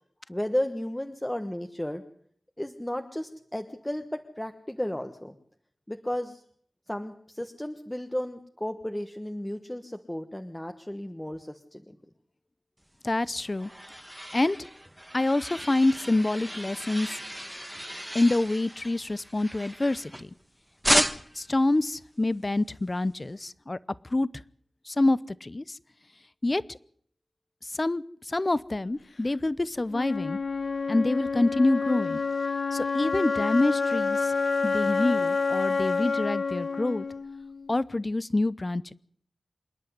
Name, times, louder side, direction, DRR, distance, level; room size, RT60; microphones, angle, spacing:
voice 1, 0.3-2.0 2.6-5.3 5.9-6.4 6.9-12.0, left 1 dB, 10° left, 6 dB, 1.3 m, -33 dB
voice 2, 13.0-13.7 14.3-14.6 15.1-17.2 18.1-20.3 20.9-21.0 21.4-23.8 24.1-24.3 24.9-25.8 26.4-26.8 27.7-30.4 30.9-32.2 32.7-34.3 34.6-37.1 37.7-38.9, left 2 dB, 35° left, 18 dB, 0.8 m, -26 dB
sound 1, 13.1-20.4 20.8-21.5, equal, 5° right, 1.2 m, -33 dB
Wind instrument woodwind instrument, 29.9-37.9, left 4 dB, 65° left, 1.1 m, -28 dB
27.0 x 10.5 x 9.6 m, 0.62 s
wide cardioid pair, 90°, 0 cm